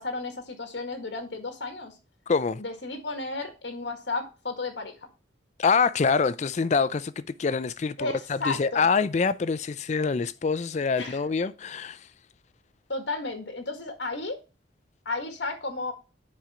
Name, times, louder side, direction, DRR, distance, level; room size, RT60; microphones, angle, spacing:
voice 1, 0.0-2.0 2.6-5.1 8.0-8.9 11.0-11.2 12.9-14.4 15.0-15.9, left 3 dB, 70° left, 1.7 m, -33 dB
voice 2, 2.3-2.6 5.6-12.1, left 5 dB, 40° left, 0.4 m, -25 dB
7.6 x 5.1 x 4.3 m
head